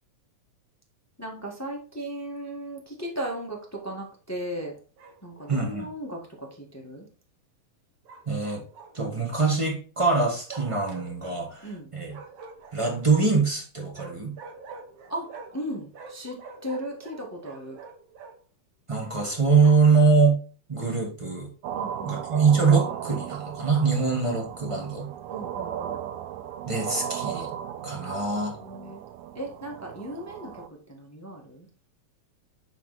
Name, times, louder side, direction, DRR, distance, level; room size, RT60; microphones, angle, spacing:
voice 1, 1.2-4.7 5.2-7.1 11.6-11.9 15.1-15.3 15.5-16.4 16.6-17.8 21.7-22.2 25.3-26.0 28.2-29.0 29.3-30.6 30.9-31.7, right 1 dB, 15° left, 0 dB, 0.5 m, -36 dB
Bark, 5.0-5.6 8.1-9.2 10.5-11.4 12.1-13.2 13.9-15.7 15.9-18.4 19.0-20.0, right 3 dB, 60° right, 2.0 m, -45 dB
voice 2, 5.5-5.9 8.3-8.6 8.9-12.2 12.7-14.3 18.9-20.4 20.7-21.5 22.0-25.1 26.7-27.5 27.8-28.6, right 4 dB, 25° right, 0 dB, 0.7 m, -23 dB
sound 1, 21.6-30.7, right 10 dB, 85° right, 2.0 m, -36 dB
9.8 x 4.0 x 4.1 m, 0.38 s
omnidirectional pair, 3.4 m